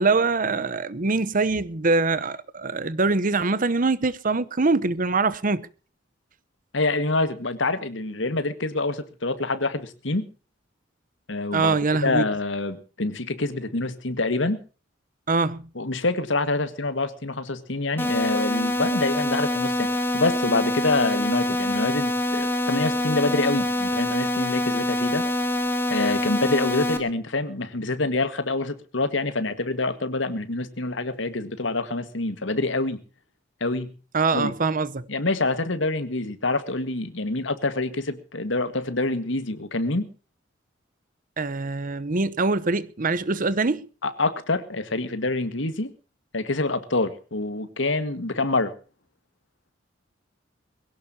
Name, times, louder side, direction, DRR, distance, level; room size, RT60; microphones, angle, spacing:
voice 1, 0.0-5.7 11.5-12.2 15.3-15.6 34.1-35.1 41.4-43.9, right 3 dB, 45° right, 0.9 m, -23 dB
voice 2, 6.7-10.3 11.3-14.6 15.8-25.3 25.9-33.0 33.6-33.9 34.3-34.5 35.1-40.1 44.0-45.9 46.3-48.7, left 2 dB, 75° left, 1.8 m, -26 dB
sound 1, 18.0-27.0, left 1 dB, 10° left, 2.6 m, -25 dB
22.0 x 17.0 x 2.9 m
head